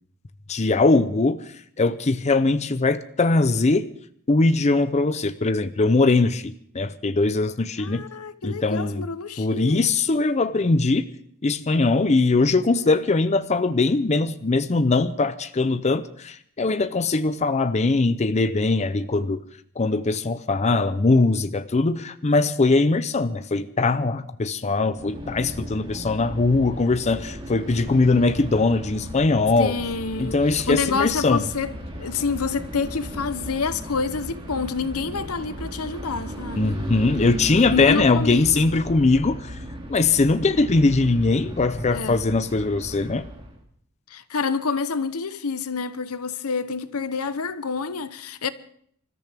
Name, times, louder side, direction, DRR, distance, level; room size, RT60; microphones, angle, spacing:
voice 1, 0.5-1.4 1.8-3.9 4.3-8.0 8.4-9.1 9.4-11.1 11.4-19.4 19.8-29.8 30.2-31.4 36.6-39.6 39.9-43.3, left 3 dB, 30° left, 0.5 m, -21 dB
voice 2, 7.8-9.9 12.8-12.9 29.6-30.4 30.7-31.7 32.0-36.8 37.6-38.5 41.9-42.2 44.1-48.5, left 5 dB, 85° left, 0.9 m, -28 dB
sound 1, 24.9-43.6, equal, 25° right, 2.5 m, -36 dB
26.0 x 13.5 x 3.5 m
head